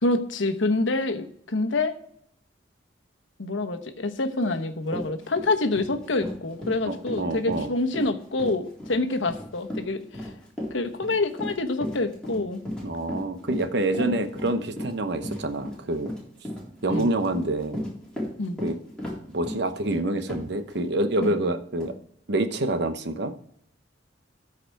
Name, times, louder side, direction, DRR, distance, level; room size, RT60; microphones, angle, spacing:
voice 1, 0.0-2.0 3.4-10.3 10.7-12.6 14.0-14.2 16.9-17.1 18.4-18.6 21.2-21.3, left 2 dB, 90° left, 7 dB, 1.1 m, -27 dB
Run, 4.5-4.6 4.9-20.8 21.2-21.4 21.8-21.9, left 1 dB, 5° left, 3.7 m, -35 dB
voice 2, 6.8-7.7 12.8-16.1 16.8-17.8 18.6-18.8 19.3-21.9 22.3-23.3, right 2 dB, 65° right, 9 dB, 1.0 m, -27 dB
13.5 x 4.9 x 4.6 m, 0.67 s
head